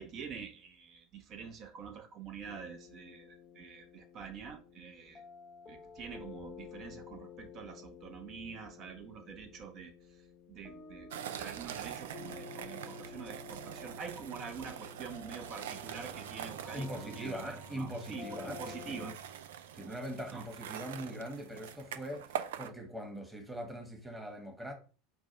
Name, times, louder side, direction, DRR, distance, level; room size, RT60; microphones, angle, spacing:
voice 1, 0.0-5.2 5.7-9.9 10.5-19.1 20.3-20.5, right 6 dB, 40° right, 0.9 m, -46 dB
sound 1, 2.5-19.2, left 6 dB, 30° left, 0.7 m, -52 dB
sound 2, 11.1-22.7, right 9 dB, 65° right, 0.4 m, -44 dB
Bowed string instrument, 15.5-20.5, right 3 dB, 80° left, 0.7 m, -57 dB
voice 2, 16.7-19.1 19.7-24.7, equal, 10° right, 1.3 m, -42 dB
4.6 x 2.3 x 4.5 m
figure-of-eight pair, 75°, 0 cm